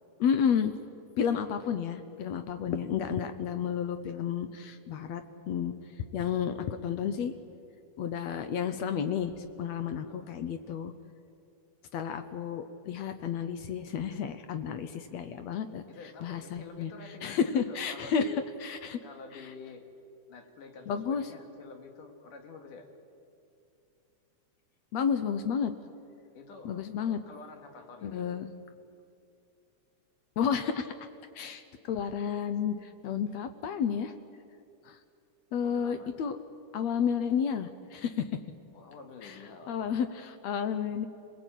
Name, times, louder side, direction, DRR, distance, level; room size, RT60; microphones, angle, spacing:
voice 1, 0.2-0.7 1.2-5.7 6.1-7.3 8.0-10.9 11.9-15.8 16.2-16.9 17.2-18.3 18.6-19.0 20.9-21.3 24.9-25.7 26.7-27.2 28.0-28.5 30.4-30.9 31.4-34.1 34.9-35.0 35.5-36.4 36.7-38.3 39.2-39.4 39.7-41.1, left 7 dB, 70° left, 9 dB, 1.9 m, -31 dB
voice 2, 10.0-10.4 15.9-18.5 19.0-19.9 20.3-22.9 26.3-28.3 35.6-36.1 38.7-39.8, left 4 dB, 85° left, 5 dB, 3.6 m, -48 dB
27.5 x 19.0 x 9.1 m, 2.6 s
omnidirectional pair, 3.6 m